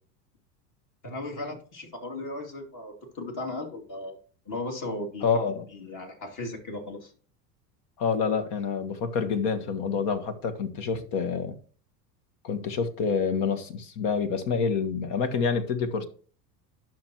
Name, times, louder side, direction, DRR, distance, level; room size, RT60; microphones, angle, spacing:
voice 1, 1.0-4.2 4.5-5.2 5.7-7.1 10.9-11.0, left 2 dB, 40° left, 2.7 m, -36 dB
voice 2, 5.2-5.6 8.0-11.5 12.4-16.1, left 5 dB, 55° left, 1.5 m, -27 dB
11.5 x 6.0 x 3.0 m
hypercardioid pair, 90°, 49 cm